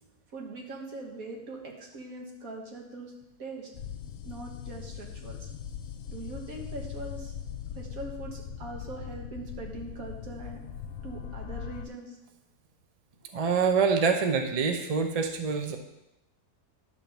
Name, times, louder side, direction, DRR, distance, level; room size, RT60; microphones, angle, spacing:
voice 1, 0.3-3.1 3.4-3.7 4.3-5.5 6.1-7.3 7.7-10.6 11.0-12.2, right 2 dB, 65° right, 0 dB, 2.0 m, -41 dB
sound 1, 3.7-11.9, left 8 dB, 65° left, 1.1 m, -40 dB
voice 2, 13.3-15.8, right 5 dB, 35° right, 5 dB, 0.6 m, -25 dB
11.0 x 3.9 x 7.0 m, 0.90 s
omnidirectional pair, 1.6 m